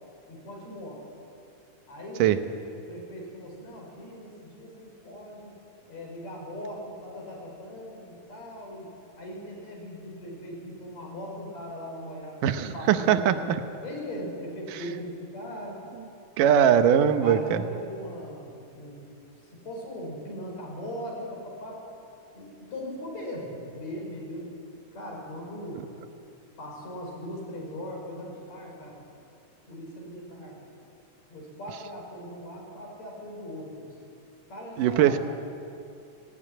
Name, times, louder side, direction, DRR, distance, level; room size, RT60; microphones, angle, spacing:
voice 1, 0.3-1.0 1.9-2.4 2.9-5.5 5.9-8.9 9.2-12.4 12.7-13.5 13.8-15.8 17.2-19.0 19.4-21.8 22.3-24.5 24.9-25.9 26.6-29.0 29.7-30.6 31.3-34.0 34.5-35.2, equal, 55° left, -1 dB, 6.5 m, -39 dB
voice 2, 12.4-13.6 16.4-17.6 34.8-35.2, right 9 dB, 85° right, 9 dB, 2.6 m, -21 dB
18.0 x 18.0 x 10.0 m, 2.6 s
omnidirectional pair, 3.7 m